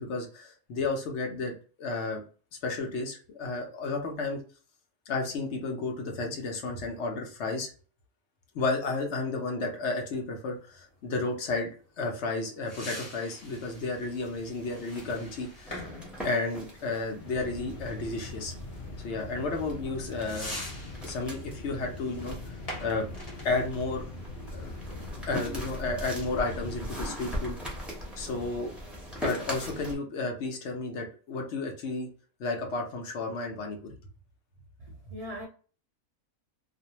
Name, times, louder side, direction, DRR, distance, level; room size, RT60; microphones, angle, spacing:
voice 1, 0.0-2.2 2.6-4.4 5.1-7.7 8.5-11.7 12.0-15.8 16.2-18.5 19.0-20.6 21.0-22.4 22.8-23.1 23.4-24.1 24.5-24.7 25.3-27.6 28.2-28.7 29.2-32.1 32.4-34.0, left 3 dB, 60° left, 0.8 m, -32 dB
sound 1, 10.5-25.3, left 1 dB, 30° left, 1.0 m, -47 dB
sound 2, 13.3-30.0, equal, ahead, 0.5 m, -41 dB
sound 3, 17.1-26.9, left 1 dB, 85° left, 0.4 m, -42 dB
voice 2, 34.8-35.4, equal, 50° right, 0.4 m, -40 dB
2.5 x 2.1 x 2.8 m
omnidirectional pair, 1.5 m